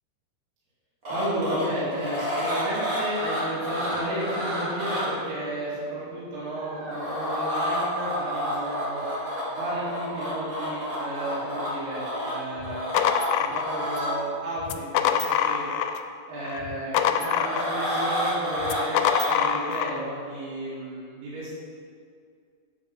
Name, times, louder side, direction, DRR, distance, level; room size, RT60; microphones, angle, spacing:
sound 1, 1.0-5.1 6.5-14.1 15.2-15.5 17.0-19.4, equal, 85° right, 0.7 m, -30 dB
voice 1, 1.1-9.0 9.5-12.9 13.4-15.6 16.3-21.5, right 1 dB, 60° right, -12 dB, 3.7 m, -33 dB
sound 2, 12.6-14.1 14.6-16.1 16.4-18.0 18.6-20.0, left 9 dB, 90° left, 2.8 m, -25 dB
9.8 x 4.7 x 5.8 m, 2.2 s
omnidirectional pair, 4.9 m